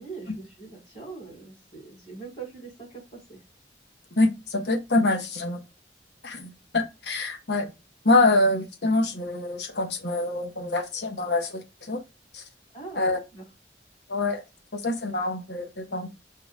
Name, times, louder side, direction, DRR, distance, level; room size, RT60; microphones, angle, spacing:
voice 1, 0.0-3.4 12.7-13.1 13.3-13.4, right 4 dB, 40° left, 4.3 m, -42 dB
voice 2, 4.2-5.6 6.2-7.7 8.0-12.0 12.3-12.4 13.0-13.2 14.1-14.4 14.7-16.1, left 2 dB, 75° left, 1.1 m, -25 dB
6.5 x 6.5 x 2.3 m
head